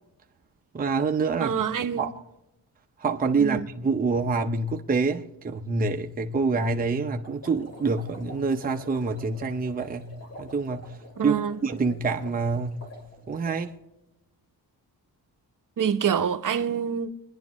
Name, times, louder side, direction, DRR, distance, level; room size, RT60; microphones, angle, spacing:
voice 1, 0.7-1.6 2.0-2.1 3.0-11.0 11.2-12.9 13.3-13.7, right 4 dB, 20° right, 0.7 m, -26 dB
voice 2, 1.4-2.0 3.4-3.6 11.2-11.6 15.8-17.1, right 7 dB, 50° right, 0.9 m, -26 dB
sound 1, 7.2-13.7, left 1 dB, 35° left, 3.3 m, -47 dB
24.5 x 10.5 x 3.1 m
wide cardioid pair, 125°, 40 cm